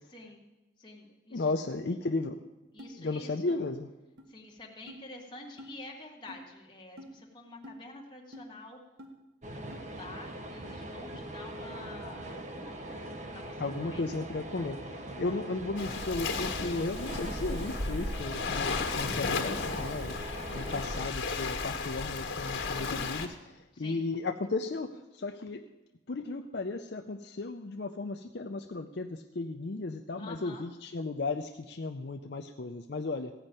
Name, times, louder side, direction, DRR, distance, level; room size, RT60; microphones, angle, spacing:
voice 1, 0.1-0.4 0.8-1.5 2.7-3.6 4.3-8.8 9.5-13.6 13.8-14.0 23.7-24.1 30.2-30.7, left 2 dB, 25° left, -1 dB, 1.8 m, -48 dB
voice 2, 1.3-2.4 3.0-3.9 13.6-25.6 26.1-33.3, left 3 dB, 55° left, 5 dB, 0.5 m, -35 dB
sound 1, 2.8-2.9 3.5-3.6 4.2-4.3 4.9-5.0 5.6-5.7 6.3-6.4 7.0-7.1 7.6-7.8 8.3-8.5 9.0-9.1 9.7-9.8, left 1 dB, 55° right, 1.7 m, -47 dB
sound 2, 9.4-21.1, right 1 dB, 35° right, 0.8 m, -41 dB
Waves surf, 15.8-23.3, left 4 dB, 80° left, 1.6 m, -34 dB
16.0 x 5.4 x 8.9 m, 1.0 s
head